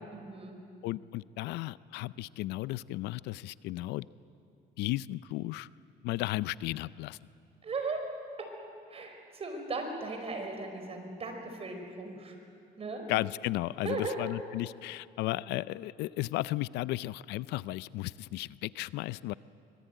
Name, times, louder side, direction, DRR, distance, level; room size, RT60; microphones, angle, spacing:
voice 1, 0.1-0.6 7.6-8.0 8.9-12.4 12.8-13.0 13.8-14.3, right 3 dB, 35° right, 4 dB, 5.1 m, -37 dB
voice 2, 0.8-4.0 4.8-5.7 6.0-7.2 13.1-19.3, left 17 dB, 85° left, 18 dB, 0.5 m, -34 dB
24.5 x 21.5 x 9.2 m, 2.5 s
cardioid pair, 110°, 17 cm